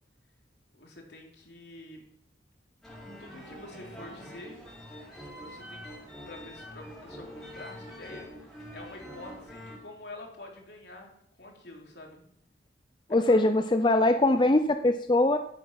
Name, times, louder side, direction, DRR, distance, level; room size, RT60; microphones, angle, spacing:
voice 1, 0.7-2.0 3.2-4.7 5.4-6.0 6.3-12.2 13.2-13.4, left 2 dB, 60° left, 1 dB, 3.4 m, -47 dB
sound 1, 2.8-9.8, equal, ahead, 4.7 m, -45 dB
voice 2, 13.1-15.4, left 2 dB, 25° left, 8 dB, 0.5 m, -22 dB
14.0 x 9.1 x 5.8 m, 0.71 s
head